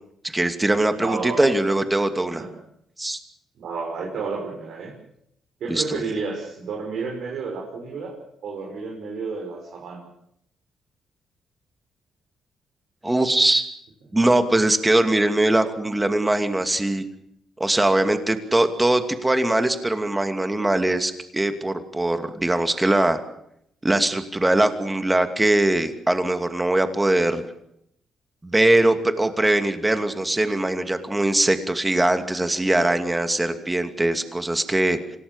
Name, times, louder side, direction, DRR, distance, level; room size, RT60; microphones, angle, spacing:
voice 1, 0.2-2.4 3.0-3.2 5.7-6.0 13.0-13.7 14.1-17.0 17.6-23.2 23.8-27.4 28.4-35.0, right 1 dB, 15° right, 8 dB, 2.6 m, -21 dB
voice 2, 0.9-1.5 2.4-2.6 3.6-4.9 5.6-8.1 8.4-10.0, right 4 dB, 70° right, -1 dB, 6.1 m, -31 dB
26.5 x 18.0 x 7.3 m, 0.75 s
cardioid pair, 90°, 0 cm